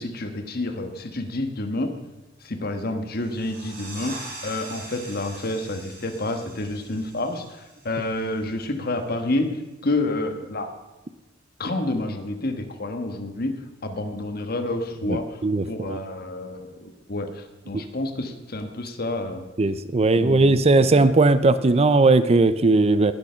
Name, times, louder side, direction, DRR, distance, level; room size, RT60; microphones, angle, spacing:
voice 1, 0.0-1.9 2.4-9.6 9.8-10.7 11.6-19.4 20.1-20.9, left 2 dB, 55° left, 6 dB, 1.4 m, -29 dB
sound 1, 3.2-8.5, right 2 dB, 50° right, 3.3 m, -42 dB
voice 2, 15.1-16.0 17.7-17.8 19.6-23.1, right 3 dB, 35° right, 14 dB, 0.5 m, -18 dB
20.0 x 6.7 x 5.7 m, 1.1 s
head